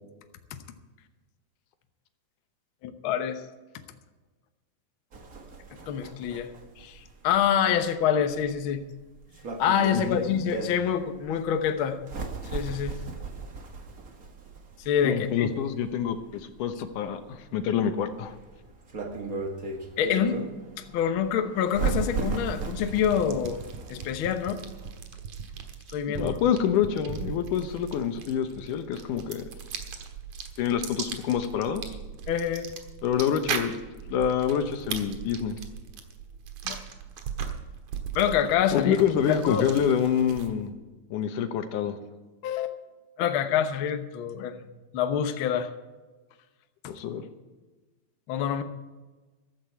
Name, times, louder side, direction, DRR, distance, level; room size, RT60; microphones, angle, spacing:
voice 1, 2.8-3.4 5.9-6.5 6.8-8.8 9.6-12.0 12.5-13.0 14.8-15.5 20.0-20.4 20.9-23.6 23.9-24.6 25.9-26.4 32.3-32.7 36.6-36.8 38.1-39.7 42.4-42.7 43.2-44.6 44.9-45.7 48.3-48.6, left 8 dB, 65° left, 7 dB, 1.3 m, -26 dB
sound 1, 5.1-25.0, right 4 dB, 40° right, 1.3 m, -37 dB
voice 2, 15.0-18.3 26.1-29.4 30.6-32.0 33.0-33.8 34.1-35.6 38.7-40.8 41.1-42.0 46.9-47.3, left 8 dB, 90° left, 8 dB, 2.6 m, -27 dB
sound 2, 22.5-40.7, right 7 dB, 70° right, 2.6 m, -39 dB
14.5 x 12.5 x 4.6 m, 1.2 s
omnidirectional pair, 3.5 m